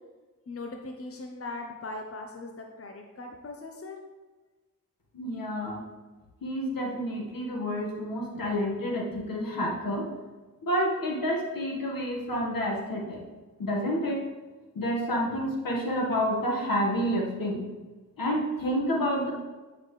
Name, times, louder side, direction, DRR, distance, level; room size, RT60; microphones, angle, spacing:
voice 1, 0.5-4.0, left 2 dB, 40° left, 2 dB, 0.8 m, -39 dB
voice 2, 5.1-5.8 6.4-10.0 10.6-13.2 13.6-14.2 14.7-17.6 18.2-19.3, equal, 75° left, -1 dB, 1.6 m, -29 dB
8.5 x 5.9 x 3.2 m, 1.3 s
cardioid pair, 65°, 35 cm